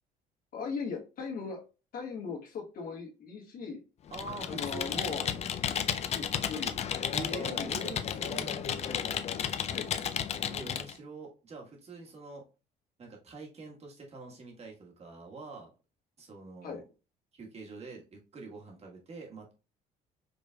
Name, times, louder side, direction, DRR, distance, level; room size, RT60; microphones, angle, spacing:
voice 1, 0.5-1.6 1.9-3.8 4.5-5.2 6.1-6.8 7.3-8.5 8.8-9.0 9.7-9.9 16.6-16.8, left 5 dB, 60° left, 0 dB, 1.5 m, -39 dB
Computer keyboard, 4.1-10.9, left 8 dB, 40° left, 0.4 m, -33 dB
voice 2, 4.1-5.4 7.1-8.8 10.5-12.4 13.0-15.7 16.2-16.8 17.3-19.5, right 4 dB, 40° right, 1 dB, 1.4 m, -45 dB
5.1 x 3.2 x 2.2 m, 0.30 s
cardioid pair, 110°, 17 cm